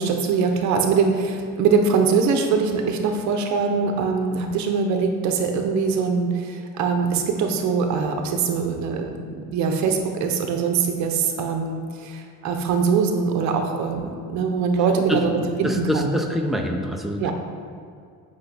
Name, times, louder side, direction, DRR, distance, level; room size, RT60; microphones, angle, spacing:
voice 1, 0.0-16.1 17.2-17.3, right 5 dB, 65° right, 4 dB, 0.7 m, -22 dB
voice 2, 15.1-17.3, equal, ahead, 2 dB, 0.3 m, -26 dB
8.1 x 5.2 x 3.3 m, 2.3 s
cardioid pair, 160°, 31 cm